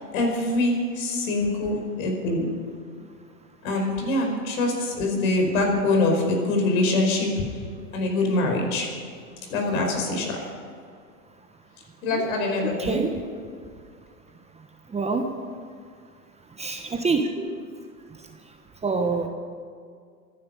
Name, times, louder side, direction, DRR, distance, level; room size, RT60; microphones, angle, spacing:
voice 1, 0.1-2.5 3.6-7.5 7.9-8.9 9.5-10.4 12.0-13.0, left 2 dB, 60° left, 2 dB, 5.4 m, -24 dB
voice 2, 12.8-13.1 14.9-15.2 16.6-17.5 18.8-19.3, right 4 dB, 15° right, 4 dB, 1.3 m, -26 dB
24.5 x 10.5 x 5.5 m, 2.2 s
hypercardioid pair, 95°, 47 cm